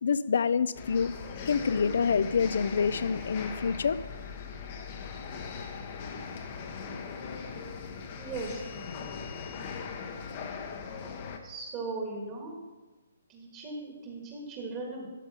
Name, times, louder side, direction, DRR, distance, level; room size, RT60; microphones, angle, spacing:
voice 1, 0.0-1.1 1.5-4.0, left 6 dB, 60° left, 17 dB, 0.4 m, -27 dB
sound 1, 0.7-11.4, left 5 dB, 30° left, 0.9 m, -39 dB
voice 2, 8.2-8.6 11.4-12.5 13.3-15.1, right 3 dB, 20° right, -1 dB, 1.5 m, -38 dB
12.5 x 5.2 x 5.6 m, 1.2 s
hypercardioid pair, 170°, 0 cm